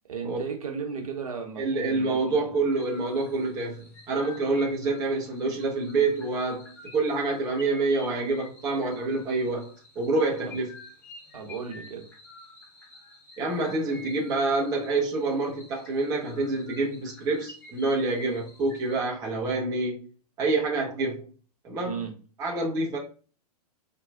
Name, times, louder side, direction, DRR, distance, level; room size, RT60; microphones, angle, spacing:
voice 1, 0.1-2.6 10.5-10.6 11.3-12.1 21.8-22.1, right 6 dB, 60° right, 0.9 m, -35 dB
voice 2, 1.6-10.7 13.4-20.0 20.4-21.2 21.6-22.1 22.4-23.0, right 3 dB, 20° right, 0.6 m, -27 dB
sound 1, 2.7-19.0, left 2 dB, 10° left, 0.9 m, -49 dB
4.2 x 2.2 x 2.4 m
figure-of-eight pair, 110°, 20 cm